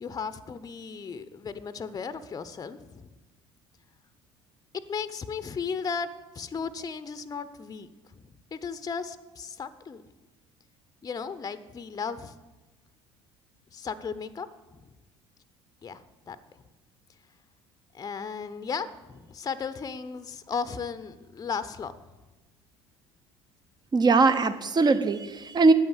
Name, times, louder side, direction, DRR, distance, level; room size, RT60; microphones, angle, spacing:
voice 1, 0.0-3.1 4.9-6.1 6.3-7.9 8.2-10.0 11.0-12.4 13.7-14.5 15.8-16.4 17.9-21.9, left 5 dB, 25° left, 13 dB, 0.7 m, -35 dB
voice 2, 23.9-25.7, right 3 dB, 30° right, 12 dB, 0.9 m, -21 dB
9.4 x 7.7 x 8.0 m, 1.1 s
hypercardioid pair, 60°, 14 cm